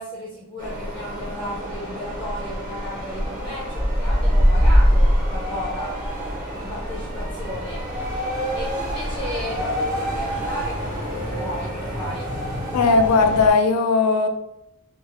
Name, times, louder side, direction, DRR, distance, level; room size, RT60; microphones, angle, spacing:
voice 1, 0.0-6.0 6.4-7.9 8.5-12.3, left 1 dB, 5° left, -6 dB, 0.5 m, -34 dB
sound 1, 0.6-13.5, equal, 40° right, 1.0 m, -24 dB
voice 2, 12.7-14.3, left 4 dB, 85° left, 7 dB, 0.4 m, -17 dB
2.6 x 2.3 x 2.9 m, 0.83 s
head